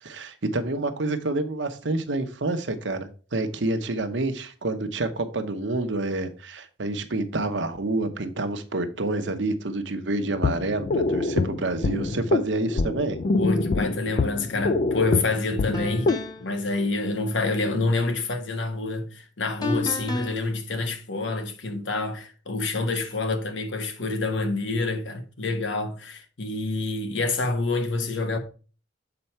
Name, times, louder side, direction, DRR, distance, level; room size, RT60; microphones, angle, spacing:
voice 1, 0.0-13.2, right 2 dB, 70° right, 0.9 m, -28 dB
sound 1, 10.2-16.2, left 3 dB, 40° left, 0.3 m, -25 dB
voice 2, 13.3-16.1 16.4-28.4, left 3 dB, 75° left, 1.0 m, -27 dB
sound 2, 14.9-15.1 15.7-16.5 19.6-20.4, left 2 dB, 20° left, 0.9 m, -31 dB
6.9 x 4.4 x 4.3 m
head